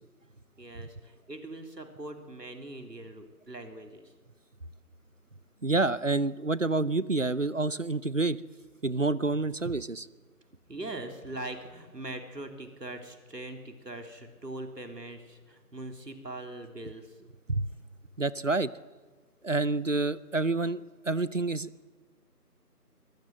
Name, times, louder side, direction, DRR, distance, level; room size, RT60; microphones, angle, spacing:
voice 1, 0.6-4.1 10.7-17.2, right 2 dB, 85° right, 5 dB, 3.6 m, -41 dB
voice 2, 5.6-8.4 8.8-10.1 17.5-17.7 18.2-18.7 19.4-21.7, right 3 dB, 50° right, 19 dB, 0.7 m, -28 dB
22.5 x 18.5 x 7.6 m, 1.4 s
figure-of-eight pair, 180°, 48 cm